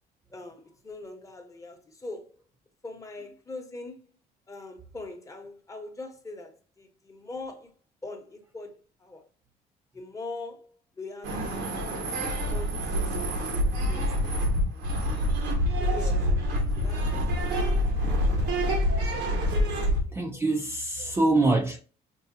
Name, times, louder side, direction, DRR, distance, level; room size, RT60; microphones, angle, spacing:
voice 1, 0.3-2.3 2.8-4.1 4.5-7.7 8.0-9.2 9.9-12.0 12.5-12.9 13.5-14.4 14.7-15.2 15.8-16.3 16.8-17.3 17.7-17.9 18.2-18.8 19.6-20.4 21.0-21.5, left 2 dB, 20° left, 0.9 m, -42 dB
sound 1, 11.2-20.0, equal, 90° right, 1.2 m, -26 dB
voice 2, 20.1-21.8, right 2 dB, 15° right, 0.4 m, -25 dB
5.3 x 2.2 x 2.6 m
cardioid pair, 110°, 17 cm